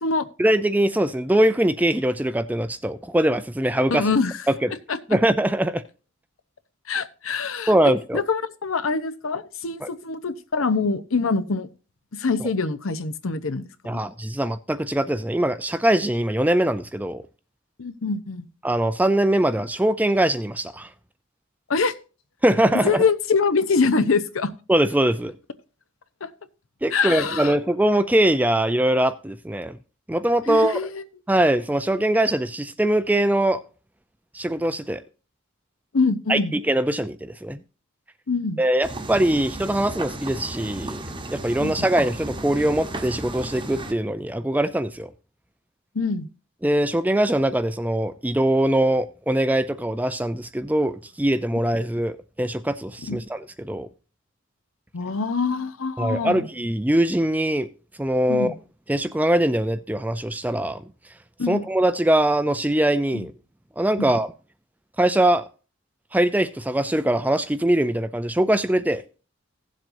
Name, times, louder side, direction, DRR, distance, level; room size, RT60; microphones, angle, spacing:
voice 1, 0.4-4.1 4.6-4.7 5.1-5.8 7.7-8.2 9.8-9.9 13.8-17.2 18.6-20.9 22.4-23.0 24.7-25.3 26.8-29.8 30.1-30.8 31.3-33.6 34.3-35.0 36.3-37.6 38.6-41.0 41.3-45.1 46.6-53.9 56.0-57.7 58.0-58.5 58.9-60.8 61.5-63.3 63.8-64.3 65.0-65.4 66.1-69.0, right 1 dB, 10° right, 0.4 m, -22 dB
voice 2, 3.9-4.3 4.9-5.0 6.9-7.8 8.1-11.7 12.1-13.7 17.8-18.5 21.7-21.9 22.8-24.5 26.2-26.3 26.9-27.6 30.5-31.0 35.9-36.5 38.3-38.6 41.6-41.9 45.9-46.3 53.1-53.2 54.9-56.5 58.3-58.5 61.4-61.6 63.1-63.3 64.0-64.1, left 4 dB, 80° left, 0.8 m, -24 dB
sound 1, 38.8-43.9, right 1 dB, 25° right, 0.9 m, -34 dB
17.0 x 7.5 x 2.6 m
head